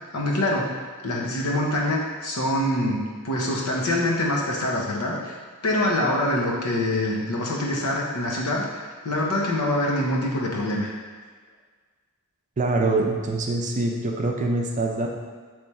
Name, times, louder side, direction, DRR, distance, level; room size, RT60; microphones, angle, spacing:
voice 1, 0.1-0.7 1.0-5.4 5.6-10.9, left 1 dB, 80° left, -2 dB, 0.8 m, -25 dB
voice 2, 12.6-15.1, right 2 dB, 35° right, 1 dB, 0.4 m, -24 dB
3.4 x 3.2 x 4.2 m, 1.5 s
head